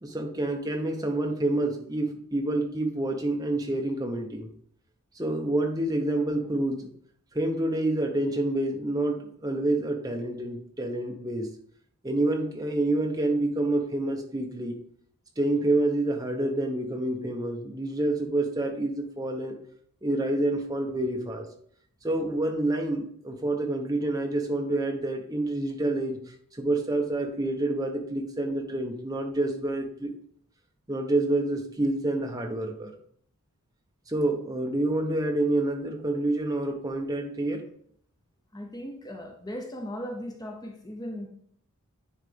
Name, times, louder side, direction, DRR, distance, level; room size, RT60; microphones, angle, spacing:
voice 1, 0.0-4.5 5.1-6.9 7.3-11.5 12.0-14.8 15.4-19.6 20.0-21.5 22.0-26.2 26.6-30.1 30.9-32.9 34.1-37.6, right 2 dB, 15° right, 3 dB, 0.9 m, -28 dB
voice 2, 38.5-41.3, equal, 20° left, 3 dB, 0.7 m, -37 dB
9.9 x 4.0 x 3.5 m, 0.62 s
head